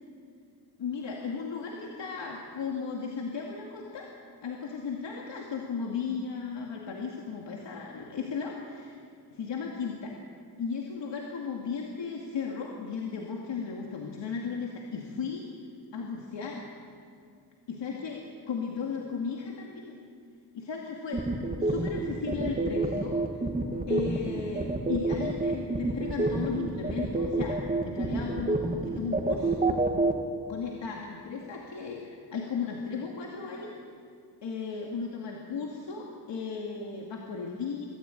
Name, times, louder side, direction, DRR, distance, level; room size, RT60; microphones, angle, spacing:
voice 1, 0.8-4.1 4.4-9.0 9.3-10.2 10.6-15.5 15.9-16.7 17.7-20.0 20.5-21.2 21.6-23.4 23.9-29.5 30.5-33.7 34.4-37.9, left 5 dB, 90° left, 0 dB, 2.3 m, -35 dB
sound 1, 21.1-30.1, right 2 dB, 20° right, 1.5 m, -27 dB
24.0 x 14.0 x 9.0 m, 2.4 s
wide cardioid pair, 160°, 42 cm